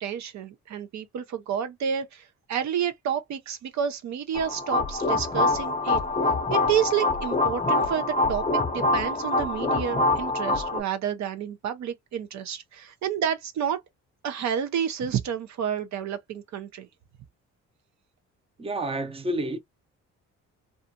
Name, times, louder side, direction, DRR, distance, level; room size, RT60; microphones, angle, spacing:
voice 1, 0.0-6.0 6.5-8.5 8.7-13.8 14.2-16.9, right 8 dB, 65° right, 0.6 m, -30 dB
sound 1, 4.3-10.8, left 2 dB, 20° left, 0.6 m, -25 dB
voice 2, 18.6-19.6, right 1 dB, 20° right, 0.6 m, -29 dB
2.4 x 2.4 x 2.6 m
cardioid pair, 90°, 30 cm